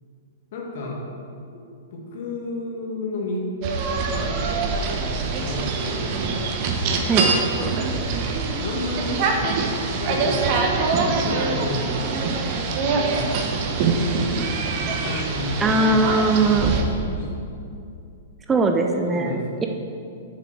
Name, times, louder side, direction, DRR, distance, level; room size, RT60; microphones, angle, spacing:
voice 1, 0.5-1.0 1.5-1.6 1.9-3.5 3.9-4.5 5.4-6.2 7.6-7.9 8.6-10.5 10.9-12.0 12.6-13.3 13.8-15.8 16.4-17.4 18.9-19.4, left 2 dB, 55° left, -1 dB, 2.0 m, -32 dB
sound 1, 3.6-16.8, right 4 dB, 40° right, 1.1 m, -24 dB
voice 2, 15.6-16.7 18.5-19.7, right 3 dB, 15° right, 3 dB, 0.6 m, -20 dB
7.1 x 6.7 x 6.2 m, 2.5 s
figure-of-eight pair, 110°, 0 cm